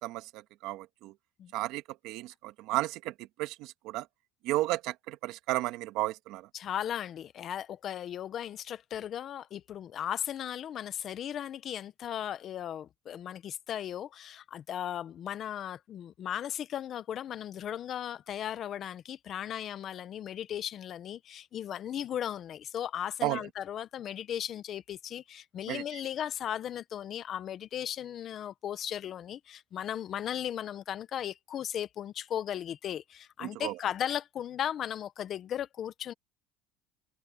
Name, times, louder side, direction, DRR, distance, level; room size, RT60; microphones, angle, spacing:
voice 1, 0.0-1.1 1.5-4.1 4.4-6.5 23.2-23.5 25.7-25.8 33.4-33.8, right 17 dB, 60° right, 1.6 m, -33 dB
voice 2, 6.5-36.1, left 10 dB, 35° left, 0.8 m, -36 dB
cardioid pair, 140°, 0 cm